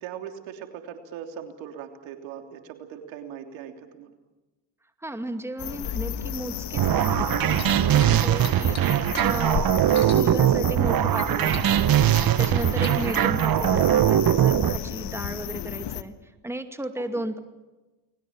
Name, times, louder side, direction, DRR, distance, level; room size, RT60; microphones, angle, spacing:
voice 1, 0.0-4.1 8.5-8.9 17.0-17.2, right 9 dB, 80° right, 5 dB, 3.3 m, -40 dB
voice 2, 5.0-8.8 9.2-12.0 12.4-17.4, right 1 dB, 5° right, 7 dB, 2.3 m, -34 dB
sound 1, 5.6-16.0, left 10 dB, 60° left, 1.5 m, -33 dB
sound 2, 6.7-14.8, right 11 dB, 50° right, 1.1 m, -21 dB
sound 3, 7.4-10.9 11.2-13.2 14.0-14.1, left 5 dB, 35° left, 4.3 m, -41 dB
29.5 x 21.0 x 7.3 m, 1.1 s
supercardioid pair, 80°, 45 cm